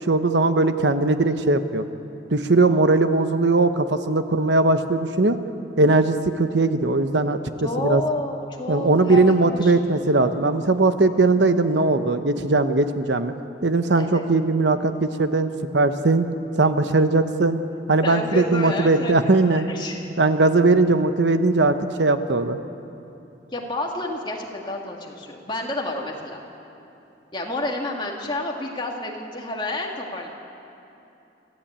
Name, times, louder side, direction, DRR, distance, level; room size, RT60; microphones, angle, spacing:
voice 1, 0.1-1.8 2.3-5.4 5.8-7.4 7.8-8.0 8.7-13.3 13.6-16.3 16.6-17.6 17.9-19.7 20.2-22.6, right 2 dB, 70° right, 9 dB, 1.0 m, -19 dB
voice 2, 7.6-9.2 9.5-9.8 13.9-14.2 18.0-20.1 23.5-26.4 27.3-30.3, left 2 dB, 25° left, 0 dB, 2.4 m, -30 dB
26.0 x 14.5 x 8.9 m, 2.9 s
head